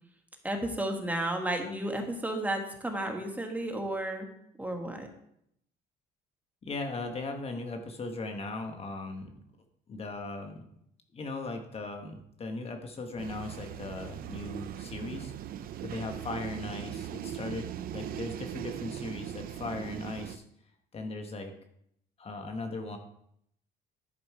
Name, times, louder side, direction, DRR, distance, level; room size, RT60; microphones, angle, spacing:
voice 1, 0.4-4.3 4.6-5.1, right 1 dB, 10° right, 3 dB, 1.5 m, -32 dB
voice 2, 6.6-9.4 9.9-10.7 11.1-15.3 15.8-20.4 20.9-21.5 22.2-23.0, left 3 dB, 35° left, 5 dB, 1.0 m, -38 dB
sound 1, 13.2-20.4, right 10 dB, 60° right, 0.6 m, -39 dB
11.0 x 5.2 x 4.6 m, 0.74 s
cardioid pair, 110°, 17 cm